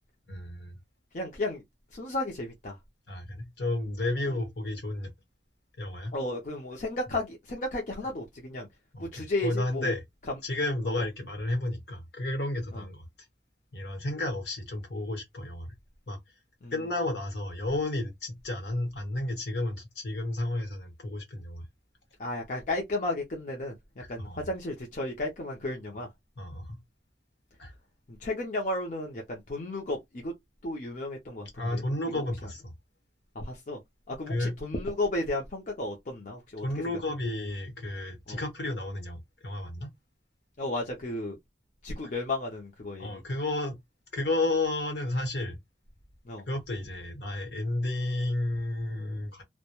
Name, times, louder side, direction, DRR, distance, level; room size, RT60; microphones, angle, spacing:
voice 1, 0.3-0.8 3.1-5.1 5.8-6.1 8.9-10.0 10.4-13.1 13.7-15.7 16.1-16.2 16.7-21.7 24.0-24.4 26.4-26.8 27.6-27.7 31.5-32.7 34.3-34.5 36.6-39.9 43.0-43.8 44.1-45.6 46.5-49.4, left 2 dB, 70° left, 1.0 m, -32 dB
voice 2, 1.1-1.6 1.9-2.8 6.1-8.7 9.0-9.9 10.9-11.0 12.7-12.8 16.6-16.7 22.2-23.7 24.1-26.1 28.1-30.3 30.6-31.8 32.1-32.2 33.3-33.8 34.1-36.6 38.3-38.4 40.6-41.4 41.8-43.2 46.3-46.4, left 2 dB, 45° left, 0.6 m, -33 dB
2.2 x 2.1 x 2.9 m
head